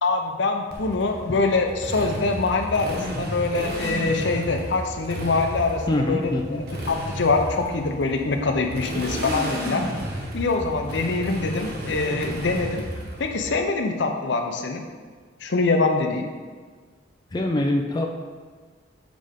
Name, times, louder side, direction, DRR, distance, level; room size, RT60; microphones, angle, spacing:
voice 1, 0.0-9.8 10.3-12.8 13.2-14.8 15.4-16.3, left 3 dB, 65° left, 4 dB, 0.7 m, -24 dB
Motorcycle, 0.7-13.6, right 1 dB, 55° right, 1.2 m, -33 dB
voice 2, 5.9-6.7 17.3-18.1, left 1 dB, 20° left, 1 dB, 0.4 m, -24 dB
7.5 x 5.0 x 3.6 m, 1.5 s
head